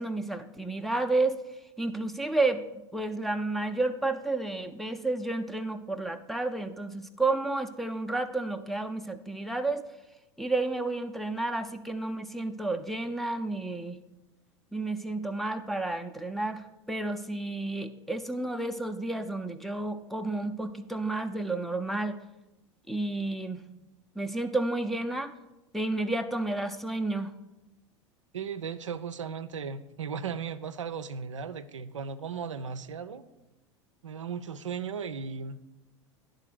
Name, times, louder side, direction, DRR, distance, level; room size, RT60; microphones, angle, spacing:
voice 1, 0.0-1.4 1.8-9.8 10.4-14.0 14.7-22.2 22.9-23.6 24.2-25.3 25.7-27.3, right 2 dB, ahead, 4 dB, 0.5 m, -31 dB
voice 2, 28.3-33.2 34.0-35.6, right 6 dB, 85° right, 10 dB, 0.4 m, -36 dB
10.5 x 3.9 x 6.4 m, 0.99 s
figure-of-eight pair, 85°, 16 cm